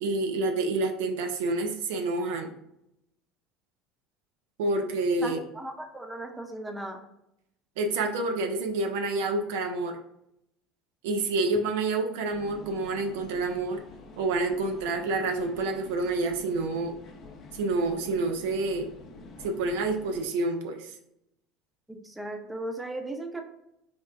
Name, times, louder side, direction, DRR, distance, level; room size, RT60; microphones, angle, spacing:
voice 1, 0.0-2.5 4.6-5.4 7.8-9.9 11.0-13.8 14.2-17.0 17.5-18.9 19.4-20.9, right 2 dB, 75° right, 4 dB, 0.4 m, -28 dB
voice 2, 5.2-7.0 21.9-23.4, right 1 dB, 10° right, 4 dB, 0.6 m, -37 dB
sound 1, 12.3-20.3, left 3 dB, 50° left, 0.5 m, -48 dB
4.0 x 2.1 x 2.4 m, 0.82 s
hypercardioid pair, 75°, 0 cm